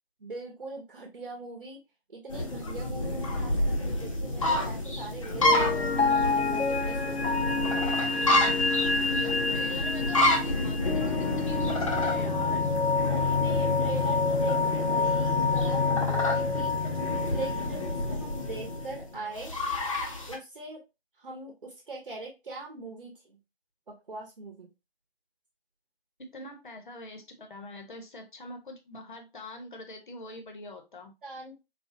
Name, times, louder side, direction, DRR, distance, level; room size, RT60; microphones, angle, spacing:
voice 1, 0.2-1.8 2.1-7.4 11.0-11.4 13.1-16.7 17.3-19.5 20.3-20.8 21.2-23.4 23.9-24.7 31.2-31.5, right 2 dB, 50° right, 0 dB, 0.9 m, -41 dB
sound 1, 2.3-20.4, left 1 dB, 30° left, 0.6 m, -30 dB
sound 2, 5.4-18.8, left 4 dB, 75° left, 0.6 m, -28 dB
voice 2, 8.9-12.6 16.8-17.0 26.3-31.1, left 1 dB, 50° left, 4 dB, 0.9 m, -43 dB
4.1 x 2.3 x 2.6 m, 0.26 s
figure-of-eight pair, 150°, 32 cm